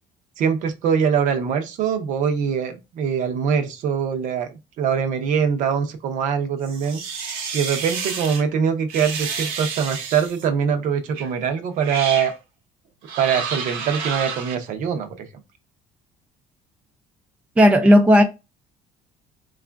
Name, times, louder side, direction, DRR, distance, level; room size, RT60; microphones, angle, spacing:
voice 1, 0.4-7.0 7.5-12.3 13.2-15.3, right 7 dB, 60° right, 0.7 m, -23 dB
sound 1, 6.6-8.4 8.9-10.5 11.1-11.3 11.8-12.3 13.0-14.6, right 6 dB, 85° right, 1.0 m, -30 dB
voice 2, 17.6-18.2, equal, 10° right, 0.4 m, -13 dB
4.7 x 2.4 x 2.3 m
cardioid pair, 150°, 15 cm